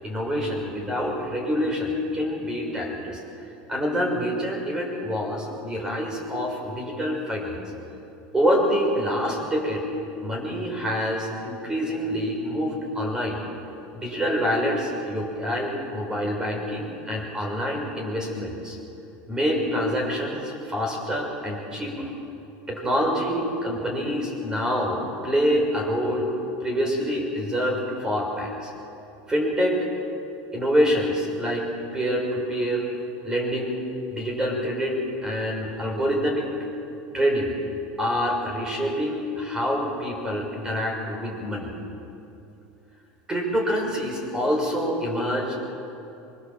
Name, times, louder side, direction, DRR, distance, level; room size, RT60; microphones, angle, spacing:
voice 1, 0.0-7.6 8.3-9.8 10.2-13.4 13.9-18.8 19.3-22.1 22.7-26.3 26.6-28.7 29.3-29.9 30.5-32.9 33.2-33.8 34.1-36.5 37.1-37.5 38.0-41.7 43.3-45.8, equal, 15° right, 0 dB, 6.1 m, -26 dB
24.0 x 22.5 x 7.6 m, 2.8 s
supercardioid pair, 140°, 6 cm